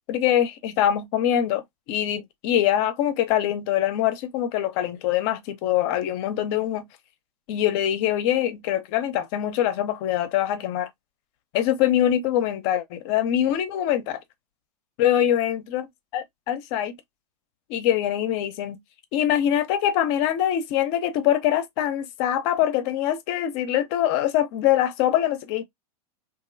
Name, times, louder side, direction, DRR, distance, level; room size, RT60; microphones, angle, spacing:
voice 1, 0.1-1.6 1.9-6.8 7.5-10.9 11.5-14.2 15.0-15.9 16.1-16.9 17.7-18.8 19.1-25.6, left 11 dB, 45° left, 0.7 m, -23 dB
2.9 x 2.6 x 2.6 m
hypercardioid pair, 135°, 20 cm